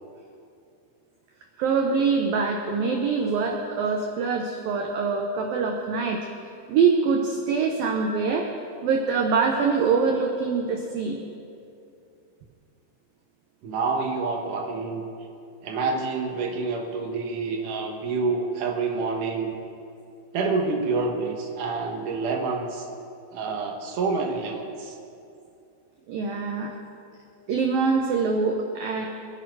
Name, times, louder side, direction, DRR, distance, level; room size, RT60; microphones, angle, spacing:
voice 1, 1.6-6.2 6.7-8.5 8.8-11.2 26.1-26.7 27.5-29.1, right 5 dB, 85° right, 2 dB, 2.0 m, -24 dB
voice 2, 13.6-15.1 15.6-19.5 20.3-22.9 23.3-24.9, right 4 dB, 70° right, 1 dB, 2.0 m, -27 dB
24.0 x 11.0 x 4.8 m, 2.6 s
omnidirectional pair, 5.6 m